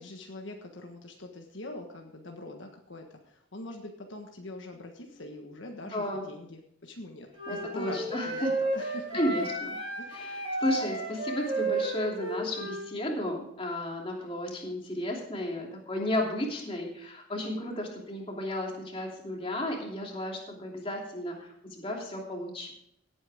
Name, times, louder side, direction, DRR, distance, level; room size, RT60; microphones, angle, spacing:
voice 1, 0.0-9.1 10.0-10.3, left 2 dB, 65° left, 2 dB, 1.4 m, -43 dB
voice 2, 5.9-6.2 7.5-8.5 8.8-9.8 10.1-22.7, left 1 dB, 25° left, -1 dB, 2.9 m, -33 dB
Wind instrument woodwind instrument, 7.4-12.8, right 2 dB, 25° right, 4.2 m, -32 dB
17.5 x 8.9 x 3.6 m, 0.72 s
head